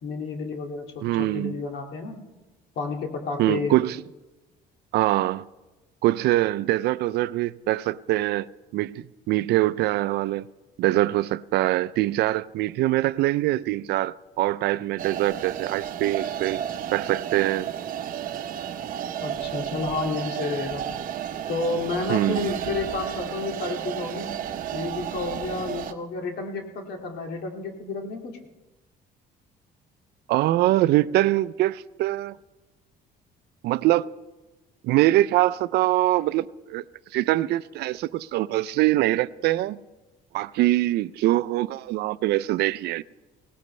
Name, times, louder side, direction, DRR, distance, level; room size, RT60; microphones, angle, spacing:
voice 1, 0.0-2.2 2.8-3.8 19.2-20.9 21.5-24.3 24.7-28.4, left 3 dB, 70° left, 2.2 m, -31 dB
voice 2, 1.0-1.6 3.4-4.0 4.9-5.5 6.0-10.5 10.8-16.6 16.9-17.7 22.1-22.5 30.3-32.3 33.6-34.1 34.8-36.8 37.1-39.8 40.3-43.0, right 16 dB, 75° right, 0.4 m, -23 dB
sound 1, 15.0-25.9, right 10 dB, 55° right, 0.8 m, -32 dB
20.5 x 17.5 x 3.2 m
cardioid pair, 110°, 17 cm